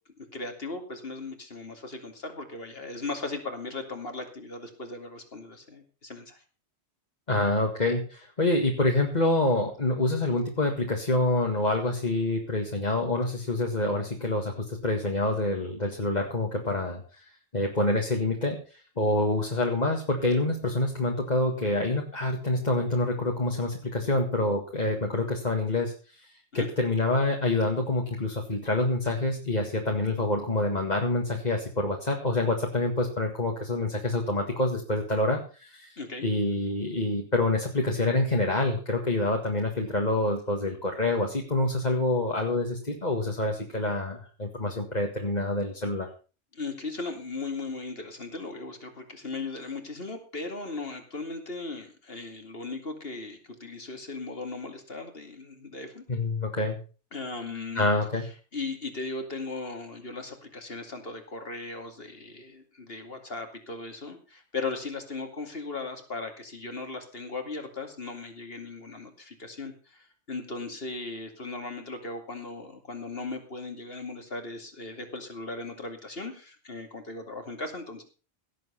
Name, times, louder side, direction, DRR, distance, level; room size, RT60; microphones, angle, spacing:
voice 1, 0.2-6.4 26.5-26.7 36.0-36.3 46.5-56.0 57.1-57.9 58.5-78.0, left 3 dB, 60° left, 5 dB, 2.7 m, -37 dB
voice 2, 7.3-17.2 17.5-26.3 26.5-36.0 36.2-46.1 56.1-56.8 57.7-58.2, left 2 dB, 40° left, 1 dB, 2.1 m, -27 dB
17.0 x 7.8 x 5.8 m, 0.36 s
omnidirectional pair, 1.1 m